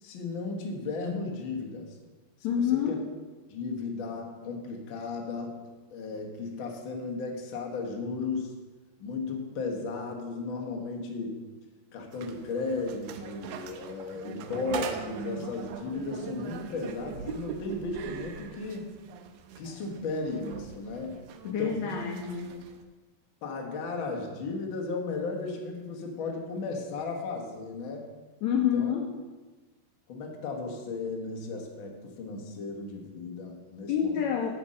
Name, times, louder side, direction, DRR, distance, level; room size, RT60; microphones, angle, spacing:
voice 1, 0.0-1.9 2.6-3.0 3.5-8.5 9.0-11.5 11.9-18.9 19.6-21.2 21.4-21.9 23.4-28.0 28.6-28.9 30.1-34.4, left 3 dB, 55° left, 1 dB, 1.3 m, -35 dB
voice 2, 2.4-3.0 21.4-22.6 28.4-29.1 33.9-34.6, left 8 dB, 80° left, 2 dB, 1.6 m, -28 dB
sound 1, 12.1-22.8, right 7 dB, 80° right, 1.9 m, -41 dB
9.7 x 4.6 x 7.5 m, 1.3 s
omnidirectional pair, 4.0 m